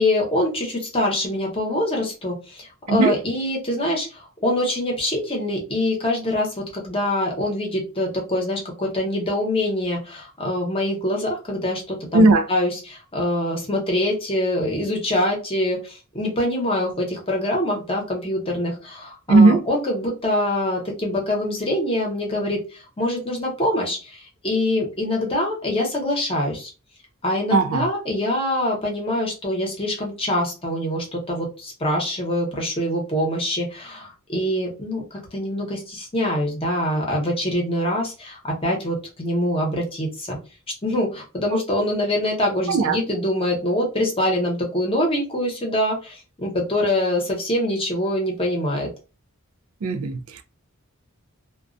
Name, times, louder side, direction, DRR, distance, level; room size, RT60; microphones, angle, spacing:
voice 1, 0.0-26.7 27.2-40.4 40.8-48.9, left 1 dB, 25° left, 0.8 m, -24 dB
voice 2, 12.1-12.5 19.3-19.7 27.5-27.9 41.5-41.6 42.7-43.0 49.8-50.4, right 3 dB, 70° right, 0.4 m, -17 dB
2.3 x 2.2 x 2.5 m
head